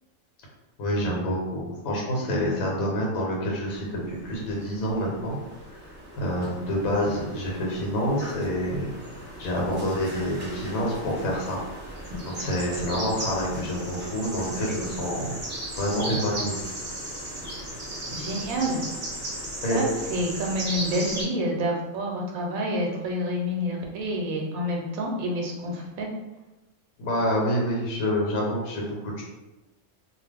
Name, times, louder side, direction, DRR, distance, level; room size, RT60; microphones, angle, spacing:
voice 1, 0.8-5.4 6.2-8.9 9.4-11.6 12.2-15.3 15.8-16.6 19.6-19.9 27.0-29.2, equal, 80° left, -3 dB, 1.2 m, -27 dB
sound 1, 3.8-21.2, right 1 dB, 30° right, 0.9 m, -37 dB
voice 2, 18.1-18.8 19.7-26.1, equal, 80° right, 0 dB, 1.0 m, -28 dB
2.5 x 2.3 x 3.4 m, 1.1 s
omnidirectional pair, 1.4 m